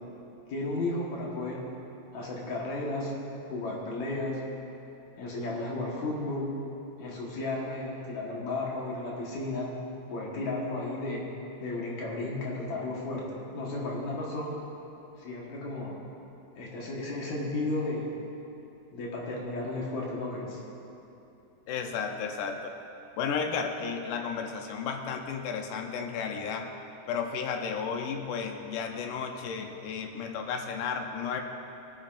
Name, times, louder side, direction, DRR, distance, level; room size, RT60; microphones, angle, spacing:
voice 1, 0.5-1.6 2.1-3.1 3.5-4.4 5.2-6.5 7.0-9.7 10.1-11.2 11.6-14.5 15.2-16.0 16.6-18.1 18.9-20.6, left 2 dB, 60° left, -4 dB, 2.7 m, -33 dB
voice 2, 21.7-22.7 23.2-26.7 27.1-31.4, left 6 dB, 75° left, 4 dB, 2.1 m, -33 dB
19.5 x 9.0 x 2.6 m, 2.9 s
omnidirectional pair, 3.9 m